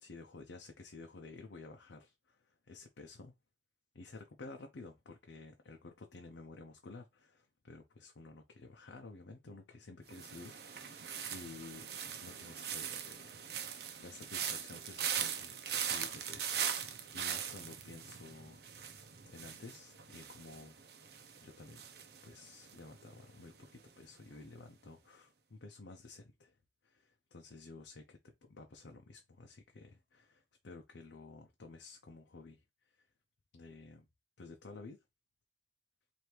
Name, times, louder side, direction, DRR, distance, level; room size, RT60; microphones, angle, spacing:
voice 1, 0.0-3.3 3.9-11.9 12.2-20.8 21.1-21.9 22.2-26.6 26.8-33.1 33.5-34.0 34.4-35.0, left 3 dB, 85° left, 0.6 m, -53 dB
sound 1, 10.1-23.1 23.4-23.9, right 8 dB, 60° right, 0.7 m, -41 dB
4.5 x 2.7 x 3.3 m
head